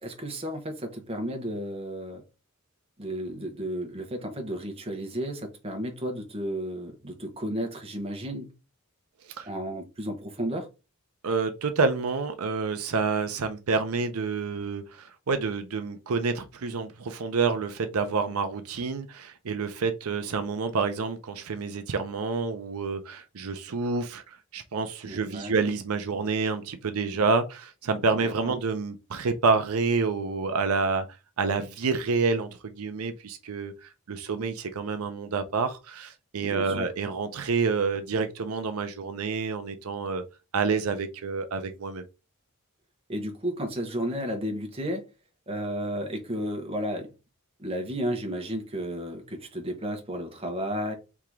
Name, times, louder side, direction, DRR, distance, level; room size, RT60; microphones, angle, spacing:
voice 1, 0.0-2.2 3.0-8.5 9.4-10.7 25.0-25.5 28.1-28.6 36.4-36.9 43.1-45.1 45.5-47.1 47.6-50.9, equal, 25° right, 1.0 m, -33 dB
voice 2, 11.2-31.1 31.4-40.2 40.5-42.1, right 4 dB, 75° right, 0.6 m, -28 dB
3.6 x 2.9 x 4.7 m
head